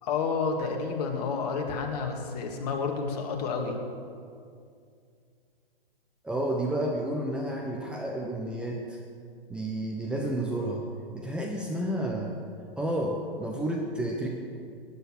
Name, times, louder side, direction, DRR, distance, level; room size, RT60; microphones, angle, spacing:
voice 1, 0.0-3.8, left 5 dB, 40° left, 3 dB, 2.0 m, -30 dB
voice 2, 6.2-9.0 9.5-10.9 11.1-12.3 12.7-14.3, right 1 dB, 5° right, -1 dB, 0.8 m, -31 dB
15.5 x 9.8 x 6.1 m, 2.3 s
figure-of-eight pair, 120°, 30 cm